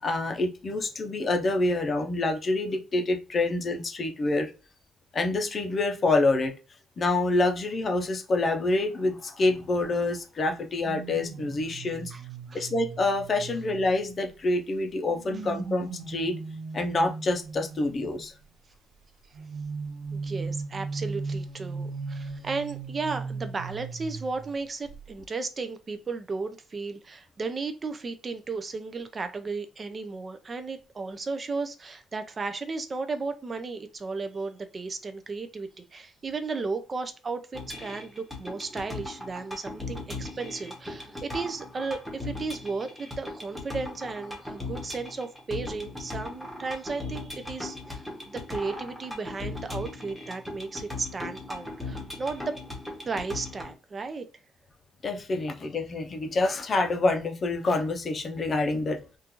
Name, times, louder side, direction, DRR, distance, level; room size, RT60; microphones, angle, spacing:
voice 1, 0.0-4.5 5.1-6.5 7.0-12.1 12.5-16.4 16.7-18.3 55.0-59.0, left 2 dB, 35° left, 0.6 m, -27 dB
sound 1, 10.8-14.4 15.0-18.3 19.3-24.6 24.8-25.1, right 4 dB, 70° right, 0.8 m, -37 dB
voice 2, 20.1-52.6 53.0-54.2, right 4 dB, 30° right, 0.4 m, -34 dB
sound 2, 37.5-53.7, left 2 dB, ahead, 0.9 m, -38 dB
3.7 x 2.4 x 2.9 m
cardioid pair, 145°, 0 cm